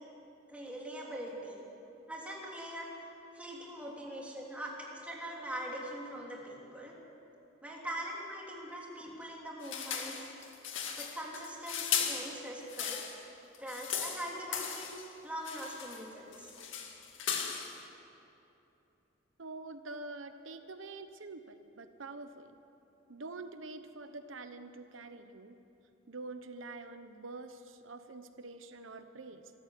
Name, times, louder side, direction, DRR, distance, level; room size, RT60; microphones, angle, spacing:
voice 1, 0.5-1.6 2.1-7.0 7.6-10.2 11.0-13.0 13.6-14.9 15.2-16.5, right 1 dB, 5° right, -3 dB, 3.5 m, -42 dB
sound 1, 9.6-13.2 13.5-15.1 15.4-16.1 16.3-17.8, left 7 dB, 75° left, 2.1 m, -37 dB
voice 2, 19.4-22.5 23.1-25.6 26.1-29.5, right 3 dB, 85° right, 9 dB, 1.0 m, -46 dB
26.0 x 13.5 x 8.4 m, 2.9 s
head